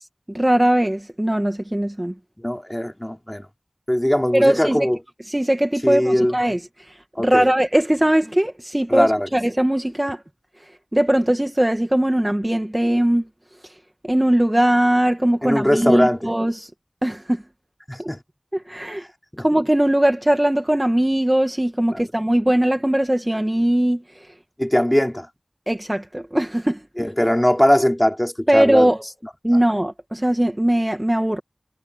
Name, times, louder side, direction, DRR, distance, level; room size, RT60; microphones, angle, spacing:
voice 1, 0.3-2.1 4.3-4.9 5.3-10.2 10.9-13.3 13.6-13.7 14.0-16.7 17.0-17.4 18.0-18.1 18.5-19.1 19.4-24.3 25.7-26.8 28.5-29.0 29.4-31.4, right 1 dB, 20° right, 1.6 m, -20 dB
voice 2, 2.4-3.5 3.9-5.0 5.8-6.3 7.2-7.5 8.9-9.3 15.4-16.2 17.9-18.2 19.3-19.5 21.9-22.0 24.6-25.3 27.0-28.9, equal, 15° left, 4.7 m, -20 dB
wide cardioid pair, 45°, 0 cm